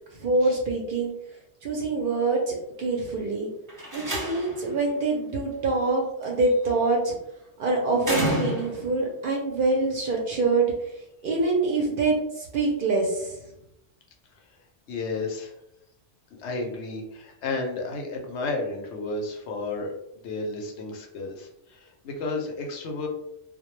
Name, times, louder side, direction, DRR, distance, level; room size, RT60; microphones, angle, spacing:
voice 1, 0.2-1.1 1.6-3.5 3.9-7.1 7.6-10.7 11.2-13.3, right 3 dB, 60° right, -1 dB, 0.6 m, -25 dB
Slam, 3.7-4.7 6.2-6.7 8.0-9.0, equal, 20° right, 0.8 m, -30 dB
voice 2, 14.9-15.5 16.4-23.1, left 3 dB, 75° left, 1 dB, 0.9 m, -32 dB
2.1 x 2.1 x 3.0 m, 0.82 s
omnidirectional pair, 1.2 m